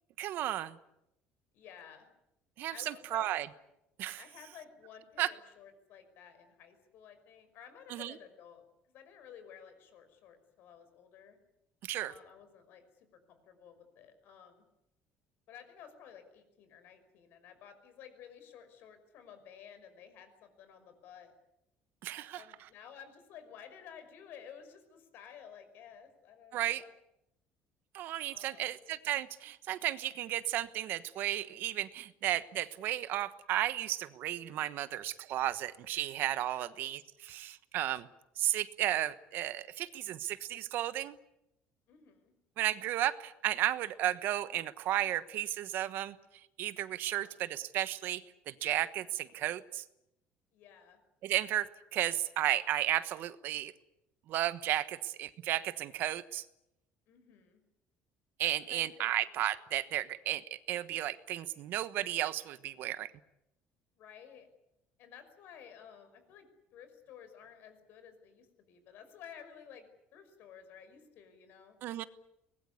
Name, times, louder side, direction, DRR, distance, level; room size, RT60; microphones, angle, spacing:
voice 1, 0.2-0.8 2.6-3.5 4.0-4.2 5.2-5.3 7.9-8.1 11.9-12.1 22.0-22.4 26.5-26.8 27.9-38.1 38.4-41.2 42.6-46.2 46.6-49.8 51.2-53.7 54.3-56.4 58.4-63.1 71.8-72.0, right 13 dB, 60° right, 14 dB, 1.2 m, -34 dB
voice 2, 1.5-2.1 2.7-3.5 4.2-11.4 12.0-14.6 15.5-21.3 22.3-26.9 28.3-28.8 36.5-36.8 41.9-42.3 47.1-47.3 50.5-51.0 57.1-57.6 58.4-59.2 64.0-64.5 65.0-71.8, left 8 dB, 60° left, 9 dB, 5.6 m, -54 dB
23.5 x 20.5 x 9.8 m, 0.85 s
cardioid pair, 155°, 4 cm